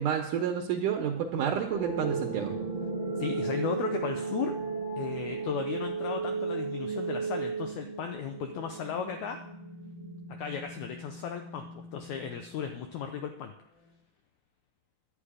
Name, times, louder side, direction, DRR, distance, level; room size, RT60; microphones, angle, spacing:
voice 1, 0.0-2.5, right 8 dB, 70° right, 2 dB, 2.2 m, -29 dB
sound 1, 1.7-12.7, right 4 dB, 5° left, 1.4 m, -35 dB
voice 2, 3.2-4.5 5.0-9.4 10.4-13.5, left 7 dB, 85° left, 6 dB, 1.6 m, -35 dB
11.5 x 9.1 x 4.9 m, 0.78 s
omnidirectional pair, 4.2 m